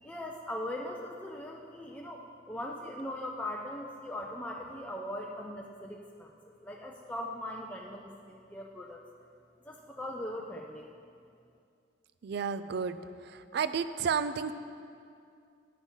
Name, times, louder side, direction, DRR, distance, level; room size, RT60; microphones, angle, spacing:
voice 1, 0.0-6.3 6.6-9.0 9.6-10.9, left 1 dB, 5° left, -1 dB, 0.4 m, -40 dB
voice 2, 12.2-13.0 13.5-14.5, right 6 dB, 55° right, 12 dB, 0.3 m, -31 dB
9.4 x 5.6 x 6.3 m, 2.4 s
head